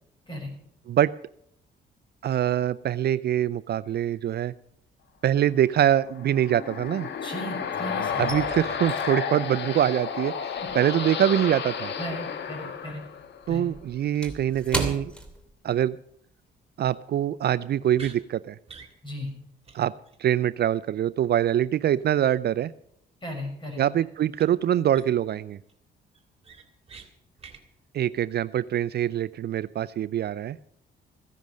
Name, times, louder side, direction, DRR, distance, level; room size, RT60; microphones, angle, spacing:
voice 1, 2.2-4.5 5.2-7.1 8.2-10.3 10.7-11.9 13.5-15.1 15.6-16.0 16.8-18.6 19.7-19.9 20.2-22.7 23.8-25.6 27.9-30.6, right 11 dB, 55° right, 16 dB, 0.5 m, -24 dB
sound 1, 4.7-5.3 5.5-7.5 7.8-12.5 12.8-16.1 16.4-16.6 17.0-17.3, right 1 dB, 5° left, 2.8 m, -38 dB
sound 2, 6.0-13.5, left 6 dB, 60° left, 1.4 m, -32 dB
voice 2, 7.2-8.3 12.0-13.0 13.5-13.7 19.0-19.3 23.2-23.8, equal, 25° left, 2 dB, 6.4 m, -36 dB
sound 3, 17.9-18.2 18.7-18.9 19.3-19.4 19.7-19.8 20.1-20.2 24.3-24.5 24.9-25.3 25.7-25.8 26.1-27.1 27.4-27.6, right 5 dB, 30° right, 2.7 m, -46 dB
15.5 x 10.5 x 6.4 m, 0.71 s
cardioid pair, 90°, 20 cm